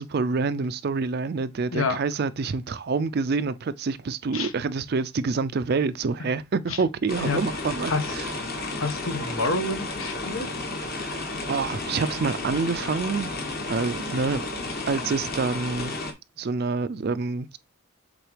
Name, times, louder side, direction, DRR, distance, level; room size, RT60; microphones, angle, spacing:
voice 1, 0.0-8.3 10.8-13.4 13.7-14.4 14.8-15.9 16.4-17.6, right 4 dB, 45° right, 0.4 m, -27 dB
sound 1, 7.1-16.1, left 2 dB, 45° left, 1.5 m, -32 dB
voice 2, 8.8-10.5, left 3 dB, 75° left, 1.3 m, -27 dB
7.9 x 3.8 x 3.2 m
head